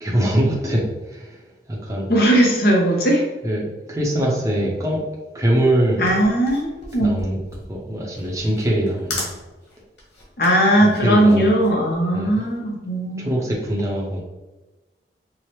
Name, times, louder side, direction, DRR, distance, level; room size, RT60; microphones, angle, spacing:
voice 1, 0.0-1.4 1.7-2.1 3.4-5.0 5.3-6.1 7.0-7.4 7.7-9.3 10.8-11.5 12.1-12.3 13.2-14.2, right 1 dB, 15° right, -4 dB, 0.6 m, -22 dB
voice 2, 2.1-3.2 6.0-7.2 10.4-13.3, right 1 dB, 55° left, -2 dB, 0.8 m, -18 dB
sound 1, 5.9-12.5, left 2 dB, 85° left, 1.3 m, -36 dB
4.7 x 2.1 x 2.9 m, 1.1 s
head